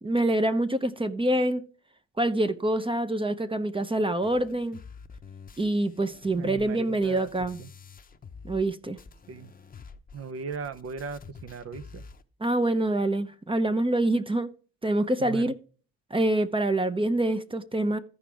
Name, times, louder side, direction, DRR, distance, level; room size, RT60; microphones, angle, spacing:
voice 1, 0.0-1.6 2.2-4.8 5.6-7.6 8.4-9.0 12.4-14.5 14.8-15.5 16.1-18.0, right 1 dB, 15° right, 0.7 m, -26 dB
sound 1, 4.2-8.7 9.0-12.2, left 5 dB, 30° left, 0.8 m, -48 dB
voice 2, 6.4-7.3 7.6-7.7 9.3-9.5 10.1-12.0 15.2-15.5, right 5 dB, 50° right, 0.9 m, -38 dB
14.5 x 5.0 x 3.5 m
cardioid pair, 90°, 30 cm